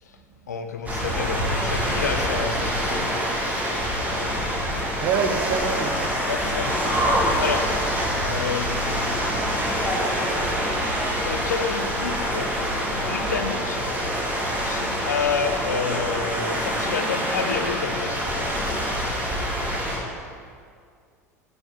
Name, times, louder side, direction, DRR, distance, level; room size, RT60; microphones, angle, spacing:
voice 1, 0.5-3.2 4.0-4.8 6.2-7.0 7.4-7.7 8.2-9.4 11.2-12.6 12.9-13.9 14.6-18.8, left 5 dB, 80° left, 6 dB, 0.6 m, -30 dB
sound 1, 0.9-20.0, equal, 15° right, 1.9 m, -25 dB
voice 2, 5.0-6.3, right 6 dB, 50° right, 6 dB, 0.8 m, -27 dB
6.4 x 4.9 x 6.6 m, 2.2 s
figure-of-eight pair, 70°, 9 cm